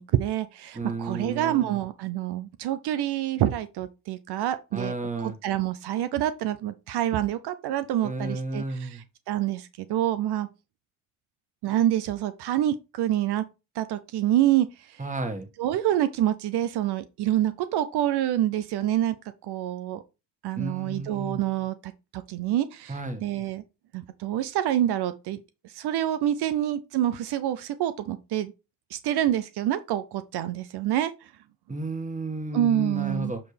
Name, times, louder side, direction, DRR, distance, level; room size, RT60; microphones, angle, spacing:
voice 1, 0.0-4.9 5.2-10.5 11.6-13.4 13.8-15.0 15.6-19.2 19.4-20.0 20.4-23.6 23.9-28.5 28.9-31.3 32.5-33.3, right 12 dB, 75° right, 0.6 m, -27 dB
voice 2, 0.7-1.8 4.7-5.3 8.0-9.0 15.0-15.5 20.5-21.4 22.9-23.2 31.7-33.4, right 2 dB, 20° right, 1.7 m, -32 dB
7.6 x 4.7 x 3.3 m
supercardioid pair, 45°, 39 cm